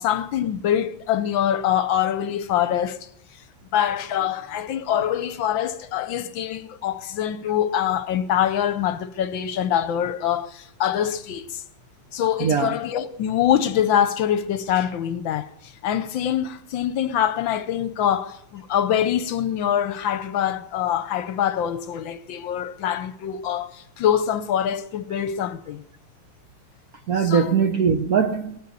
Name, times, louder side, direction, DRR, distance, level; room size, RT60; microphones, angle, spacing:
voice 1, 0.0-3.0 3.7-11.6 12.1-15.5 15.8-25.8 27.2-27.5, left 10 dB, 70° left, 1.4 m, -24 dB
voice 2, 12.4-12.7 27.1-28.6, right 6 dB, 60° right, 1.0 m, -21 dB
20.0 x 6.7 x 9.5 m
omnidirectional pair, 2.3 m